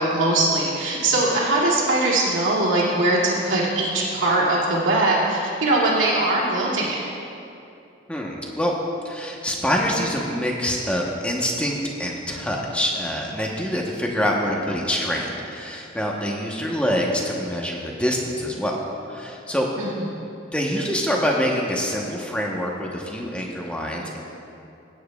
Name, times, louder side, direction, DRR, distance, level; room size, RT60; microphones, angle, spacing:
voice 1, 0.0-7.0 19.8-19.9, right 2 dB, 85° right, -6 dB, 2.3 m, -21 dB
voice 2, 8.1-8.7 9.0-18.8 19.1-19.7 20.5-24.2, equal, 5° left, -1 dB, 1.0 m, -25 dB
17.0 x 9.1 x 2.3 m, 2.7 s
head